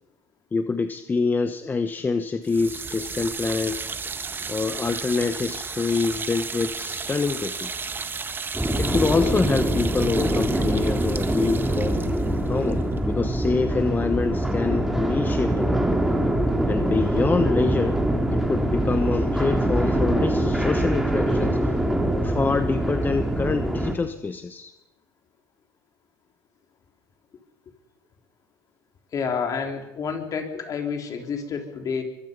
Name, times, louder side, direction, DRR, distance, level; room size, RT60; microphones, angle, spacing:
voice 1, 0.5-3.9 4.5-7.7 8.8-12.0 12.4-15.8 16.7-18.0 18.3-21.8 22.2-24.7, left 4 dB, 20° left, 9 dB, 1.1 m, -26 dB
sound 1, 2.4-13.5, right 5 dB, 25° right, 1.5 m, -34 dB
sound 2, 8.5-23.9, right 1 dB, 5° right, 3.0 m, -24 dB
voice 2, 29.1-32.0, left 6 dB, 45° left, 4 dB, 3.9 m, -29 dB
23.5 x 23.0 x 5.5 m, 0.98 s
supercardioid pair, 90°, 8 cm